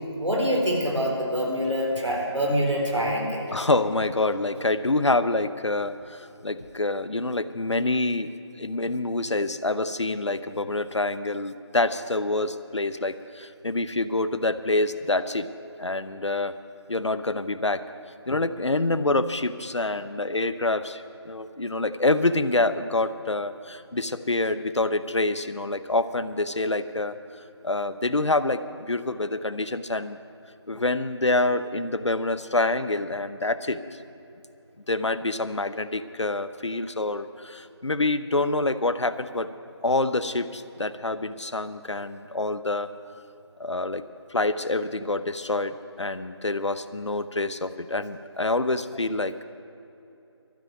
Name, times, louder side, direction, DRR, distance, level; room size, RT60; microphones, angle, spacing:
voice 1, 0.2-3.5, equal, 90° right, -1 dB, 3.9 m, -25 dB
voice 2, 3.5-8.3 8.6-15.5 15.8-16.5 16.9-17.8 18.3-27.2 27.6-30.2 30.7-33.8 34.9-39.5 39.8-42.9 43.6-44.0 44.3-49.4, left 2 dB, 85° left, 13 dB, 0.8 m, -26 dB
12.5 x 9.1 x 9.2 m, 2.9 s
figure-of-eight pair, 160°, 15 cm